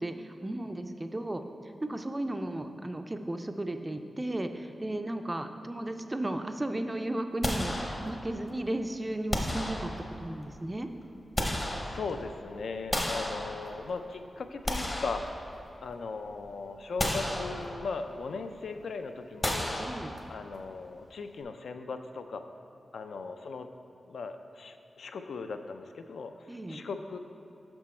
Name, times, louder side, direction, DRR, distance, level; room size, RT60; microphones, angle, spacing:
voice 1, 0.0-9.9 10.2-10.9 19.8-20.1 26.5-26.8, right 1 dB, 15° right, 7 dB, 0.3 m, -35 dB
sound 1, 7.4-8.5 9.3-10.4 11.0-12.4 12.9-14.0 14.4-15.9 16.3-16.4 17.0-18.1 19.4-20.5, left 1 dB, 20° left, 0.7 m, -33 dB
voice 2, 11.8-15.3 15.8-19.7 20.3-22.5 22.9-23.7 24.1-27.2, left 4 dB, 75° left, 7 dB, 0.4 m, -38 dB
6.1 x 6.1 x 4.3 m, 2.8 s
wide cardioid pair, 160°, 0 cm